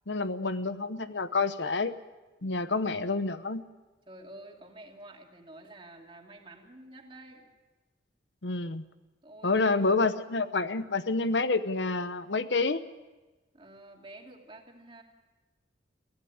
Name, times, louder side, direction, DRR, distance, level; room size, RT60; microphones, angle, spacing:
voice 1, 0.1-2.0 2.4-3.6 8.4-8.8 9.4-12.8, left 3 dB, 85° left, 12 dB, 1.0 m, -28 dB
voice 2, 2.4-2.7 4.1-7.5 9.2-9.7 13.5-15.0, right 2 dB, 30° right, 1 dB, 2.8 m, -49 dB
23.0 x 16.0 x 8.7 m, 1.2 s
head